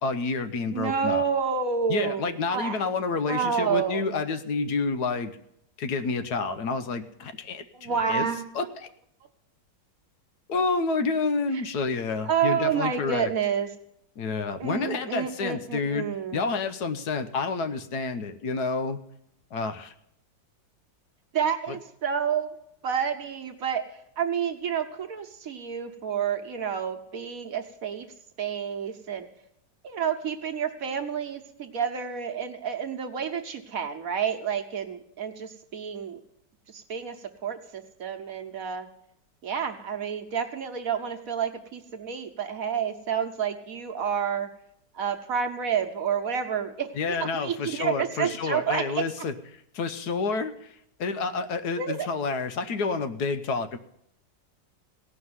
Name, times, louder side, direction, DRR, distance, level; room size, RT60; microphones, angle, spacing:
voice 1, 0.0-1.2 1.9-5.3 5.8-8.3 8.5-8.9 10.5-13.3 14.2-19.0 19.5-19.9 21.7-21.8 46.9-53.8, left 4 dB, 65° left, 9 dB, 1.3 m, -29 dB
voice 2, 0.7-2.8 3.3-4.0 7.7-8.5 11.5-11.6 12.2-13.7 14.6-16.5 21.3-22.5 22.8-23.8 24.2-28.1 28.4-29.3 29.8-36.2 36.7-37.2 37.4-38.9 39.4-44.5 44.9-49.0 51.8-52.1, right 7 dB, 55° right, 5 dB, 1.4 m, -29 dB
17.0 x 5.9 x 9.5 m, 0.76 s
omnidirectional pair, 1.9 m